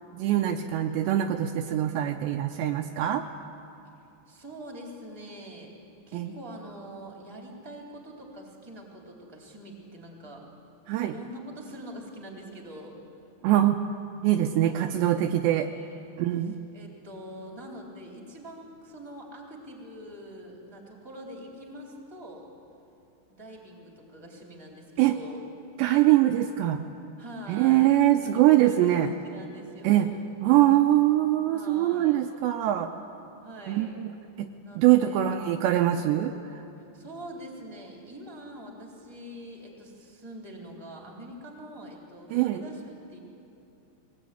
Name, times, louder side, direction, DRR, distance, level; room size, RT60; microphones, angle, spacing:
voice 1, 0.1-3.3 6.1-6.3 10.9-11.1 13.4-13.8 14.2-15.7 16.2-16.5 25.0-25.2 25.8-26.8 27.5-29.1 29.8-30.1 30.4-32.9 33.7-34.1 34.4-34.5 34.8-36.6 42.3-42.6, right 13 dB, 80° right, 5 dB, 2.8 m, -23 dB
voice 2, 4.3-5.7 6.1-10.4 11.0-13.0 14.6-15.2 15.7-16.2 16.7-22.5 23.3-25.4 27.2-30.3 31.5-32.2 33.4-34.0 34.6-35.3 36.9-43.2, equal, 5° right, 0 dB, 2.8 m, -44 dB
21.5 x 19.0 x 9.3 m, 2.8 s
omnidirectional pair, 5.3 m